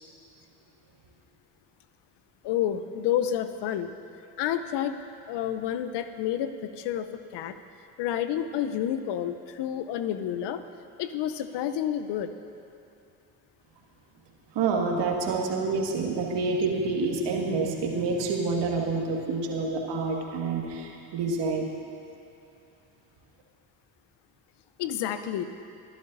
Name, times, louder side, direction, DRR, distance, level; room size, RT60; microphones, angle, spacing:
voice 1, 2.4-3.9 4.4-5.0 5.3-7.1 7.3-7.5 8.0-10.6 11.0-12.3 24.8-25.4, left 10 dB, 60° left, 10 dB, 0.8 m, -29 dB
voice 2, 14.5-21.7, right 3 dB, 60° right, 0 dB, 2.0 m, -28 dB
22.5 x 11.5 x 2.7 m, 2.6 s
hypercardioid pair, 55°, 46 cm